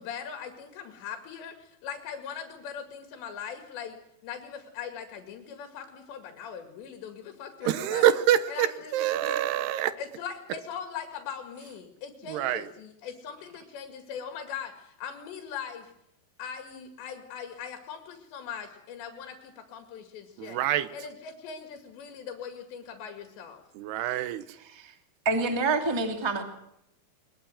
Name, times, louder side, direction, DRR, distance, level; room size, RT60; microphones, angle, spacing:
voice 1, 0.0-4.0 4.2-8.1 8.5-9.4 10.0-15.9 16.4-20.6 20.9-23.6, left 7 dB, 85° left, 4 dB, 4.4 m, -40 dB
voice 2, 7.6-9.9 12.3-12.7 20.4-20.9 23.8-24.4, right 11 dB, 80° right, 12 dB, 3.1 m, -26 dB
voice 3, 24.6-24.9 25.2-26.4, right 3 dB, 10° right, 4 dB, 1.8 m, -27 dB
22.5 x 22.0 x 7.8 m, 0.80 s
omnidirectional pair, 4.9 m